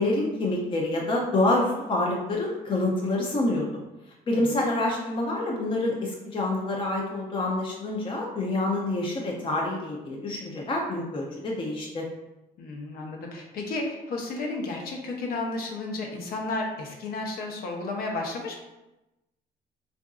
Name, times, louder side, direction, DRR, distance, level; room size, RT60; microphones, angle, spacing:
voice 1, 0.0-3.7 4.3-12.1, left 2 dB, 30° left, -1 dB, 0.5 m, -27 dB
voice 2, 12.6-18.6, left 2 dB, 60° left, 0 dB, 0.7 m, -32 dB
3.7 x 2.5 x 2.3 m, 0.97 s
cardioid pair, 110°, 17 cm